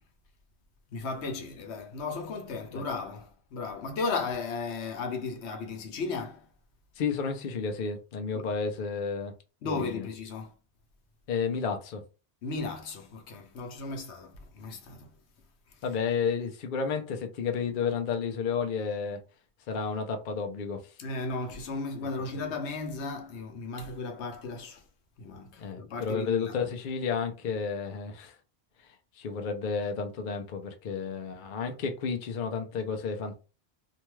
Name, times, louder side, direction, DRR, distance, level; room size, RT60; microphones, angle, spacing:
voice 1, 0.9-6.4 8.4-8.5 9.6-10.5 12.4-15.1 21.0-24.8 25.2-26.6, left 4 dB, 80° left, 1.0 m, -35 dB
voice 2, 7.0-9.3 9.6-10.1 11.3-12.0 15.8-19.2 19.7-20.8 25.6-28.3 29.2-33.4, left 5 dB, 55° left, 0.6 m, -31 dB
2.7 x 2.2 x 3.0 m
omnidirectional pair, 1.1 m